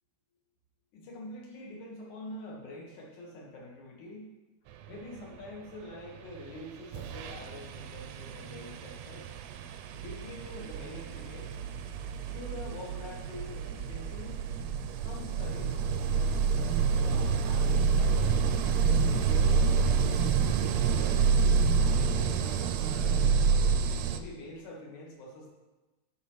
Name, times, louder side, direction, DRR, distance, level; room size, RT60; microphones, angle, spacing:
voice 1, 0.9-4.3 4.9-9.3 10.0-11.6 12.3-14.4 15.0-15.8 16.1-18.4 18.9-21.3 21.6-23.6 24.1-25.5, left 1 dB, 85° left, -2 dB, 3.2 m, -45 dB
sound 1, 6.4-6.6 6.9-24.2, right 5 dB, 80° right, 1.6 m, -28 dB
9.7 x 6.2 x 4.7 m, 1.1 s
omnidirectional pair, 3.3 m